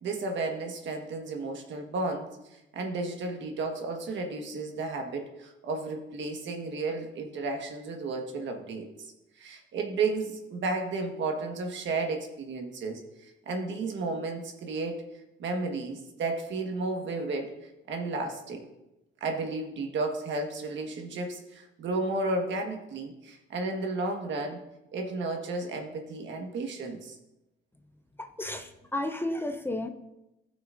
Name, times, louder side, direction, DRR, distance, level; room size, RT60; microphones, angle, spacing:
voice 1, 0.0-8.9 9.4-15.0 15.4-17.5 17.9-18.7 19.2-24.6 24.9-27.1, right 3 dB, 70° right, 3 dB, 1.5 m, -33 dB
voice 2, 28.2-29.9, left 1 dB, 10° left, 6 dB, 0.6 m, -33 dB
16.0 x 6.0 x 2.6 m, 0.94 s
cardioid pair, 90°, 20 cm